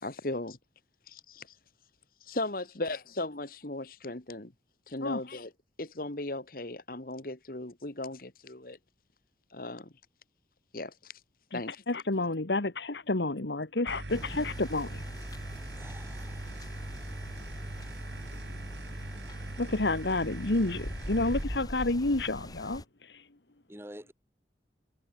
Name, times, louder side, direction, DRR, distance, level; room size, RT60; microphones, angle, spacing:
voice 1, 0.0-0.6 1.1-1.5 2.2-4.5 4.9-5.5 5.8-8.8 9.5-9.9 10.7-11.1 11.5-11.8, left 2 dB, 50° left, 1.8 m, -37 dB
voice 2, 11.9-15.0 19.6-22.8, left 2 dB, 75° left, 1.6 m, -29 dB
sound 1, 13.9-21.4, right 1 dB, 75° right, 2.4 m, -40 dB
sound 2, 14.1-22.9, equal, 20° left, 7.7 m, -43 dB
voice 3, 15.8-16.8 23.7-24.1, right 1 dB, 15° right, 4.1 m, -49 dB
head